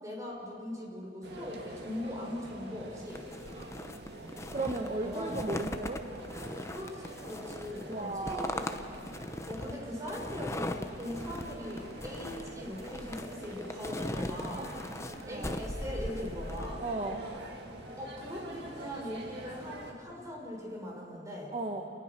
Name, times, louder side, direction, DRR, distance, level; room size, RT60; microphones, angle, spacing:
voice 1, 0.0-3.3 4.7-5.7 6.7-8.7 9.5-14.7 15.2-16.8 18.0-21.6, left 1 dB, 20° right, -1 dB, 5.1 m, -40 dB
sound 1, 1.2-19.9, right 2 dB, 60° right, 2.2 m, -46 dB
sound 2, 3.1-16.7, left 1 dB, 15° left, 0.8 m, -40 dB
voice 2, 4.5-6.0 7.9-8.6 14.5-14.6 15.0-15.6 16.8-17.2 21.5-21.8, right 2 dB, 35° right, 3 dB, 1.2 m, -36 dB
28.5 x 19.5 x 6.0 m, 2.7 s
head